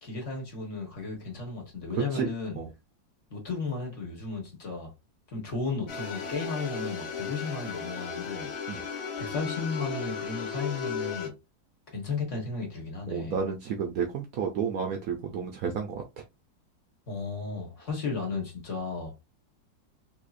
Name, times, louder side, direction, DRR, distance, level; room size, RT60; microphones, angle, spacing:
voice 1, 0.0-2.6 3.3-4.9 5.3-8.8 9.2-11.3 11.9-13.4 17.1-19.2, left 4 dB, 45° left, 1.3 m, -34 dB
sound 1, 5.9-11.3, left 6 dB, 85° left, 1.6 m, -35 dB
voice 2, 13.1-16.0, right 6 dB, 80° right, 0.8 m, -31 dB
4.1 x 2.7 x 2.4 m
omnidirectional pair, 2.1 m